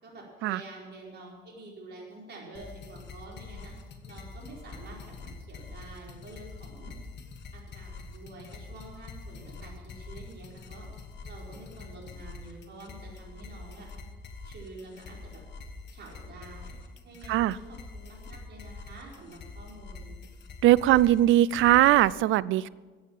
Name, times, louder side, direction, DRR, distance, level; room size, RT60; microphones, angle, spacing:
voice 1, 0.0-3.7 4.0-6.9 7.5-10.9 11.2-13.9 14.4-15.4 15.9-16.7 17.0-20.2, right 2 dB, 60° right, -2 dB, 4.8 m, -47 dB
sound 1, 2.5-22.1, left 3 dB, 60° left, 1.6 m, -45 dB
voice 2, 20.6-22.7, right 14 dB, 80° right, 21 dB, 0.4 m, -20 dB
14.0 x 8.7 x 7.3 m, 1.4 s
cardioid pair, 90°, 20 cm